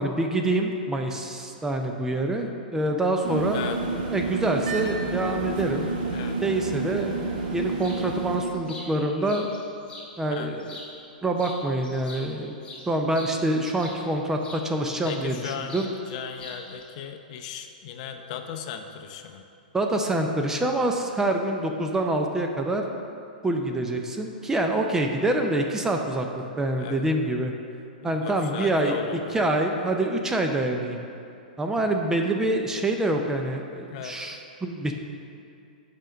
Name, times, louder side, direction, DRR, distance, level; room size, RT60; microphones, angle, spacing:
voice 1, 0.0-3.6 4.1-5.9 6.4-7.2 7.5-9.5 10.2-10.7 11.2-12.6 12.9-15.9 19.7-22.9 23.4-26.3 26.6-27.5 28.0-28.9 29.3-31.0 31.6-35.0, right 1 dB, 10° right, 3 dB, 0.4 m, -26 dB
sound 1, 3.2-8.4, right 3 dB, 55° right, 1.1 m, -29 dB
sound 2, 7.8-8.0 8.4-10.1 10.6-11.1 11.4-14.6 15.0-15.9 16.2-16.8, left 2 dB, 20° left, 1.7 m, -44 dB
voice 2, 15.0-19.4 26.8-27.0 28.0-29.5 33.9-34.2, left 8 dB, 50° left, 6 dB, 0.6 m, -37 dB
5.4 x 5.1 x 6.1 m, 2.6 s
hypercardioid pair, 130°, 5 cm